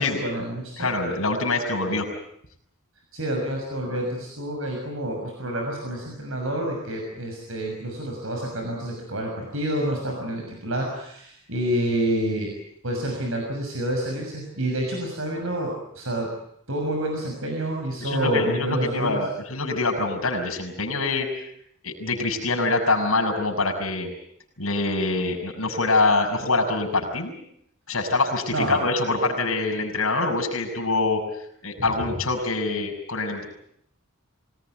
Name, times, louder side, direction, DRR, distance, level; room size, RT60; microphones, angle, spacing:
voice 1, 0.0-0.9 3.1-12.5 12.8-16.3 16.7-19.2 28.5-28.8, right 1 dB, 70° right, 1 dB, 6.5 m, -28 dB
voice 2, 0.8-2.1 18.0-21.5 21.8-24.1 24.6-27.3 27.9-31.2 31.6-33.4, left 3 dB, 75° left, 3 dB, 6.7 m, -25 dB
26.0 x 19.0 x 9.3 m, 0.70 s
head